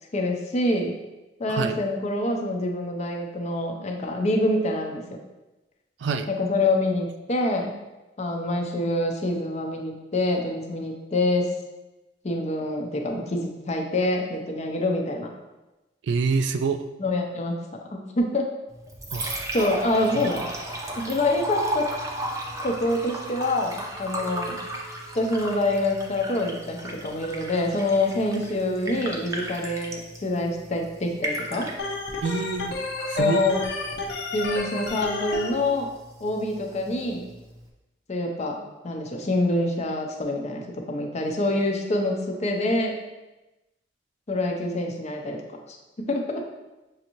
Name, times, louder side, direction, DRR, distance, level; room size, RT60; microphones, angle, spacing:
voice 1, 0.1-1.0 1.4-5.0 6.3-7.8 8.2-11.5 12.2-15.3 17.0-17.6 17.9-18.5 19.5-20.4 21.0-21.9 22.6-24.6 25.1-31.7 33.0-33.6 34.3-35.9 36.2-37.3 38.1-38.6 38.8-43.0 44.3-45.4 46.0-46.4, left 2 dB, 40° left, 2 dB, 0.6 m, -26 dB
voice 2, 1.5-1.8 6.0-6.3 16.0-16.9 19.1-19.5 20.2-20.3 32.2-32.8 33.1-33.4, right 5 dB, 75° right, 8 dB, 0.3 m, -26 dB
Liquid, 18.7-37.7, right 1 dB, 20° right, 0.6 m, -36 dB
Organ, 31.8-35.5, left 3 dB, 90° left, 0.6 m, -31 dB
6.3 x 2.6 x 2.9 m, 1.0 s
head